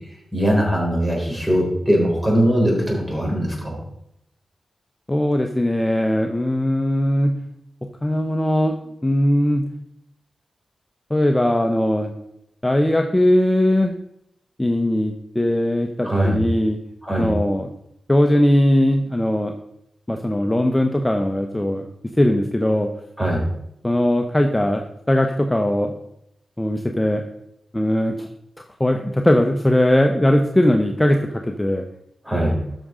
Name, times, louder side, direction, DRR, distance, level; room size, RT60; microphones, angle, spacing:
voice 1, 0.3-3.8 16.0-16.4 17.0-17.3 23.2-23.4 32.2-32.6, equal, 15° right, -1 dB, 4.0 m, -20 dB
voice 2, 5.1-7.3 8.0-8.7 9.0-9.6 11.1-12.1 12.6-13.9 14.6-16.8 17.2-17.7 18.1-19.5 20.1-21.9 22.2-22.9 23.8-26.0 26.6-27.2 27.7-28.3 28.8-31.2 31.6-31.8, left 1 dB, 15° left, 4 dB, 0.8 m, -19 dB
13.0 x 6.2 x 3.8 m, 0.78 s
cardioid pair, 70°, 0 cm